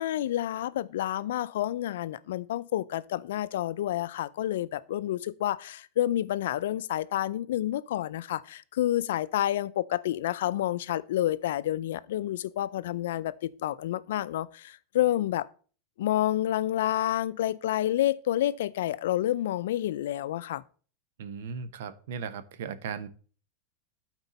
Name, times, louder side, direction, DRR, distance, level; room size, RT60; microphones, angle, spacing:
voice 1, 0.0-15.5 16.0-20.6, left 13 dB, 80° left, 0.4 m, -29 dB
voice 2, 21.2-23.1, right 6 dB, 75° right, 0.8 m, -37 dB
12.0 x 4.4 x 4.1 m
supercardioid pair, 145°, 0 cm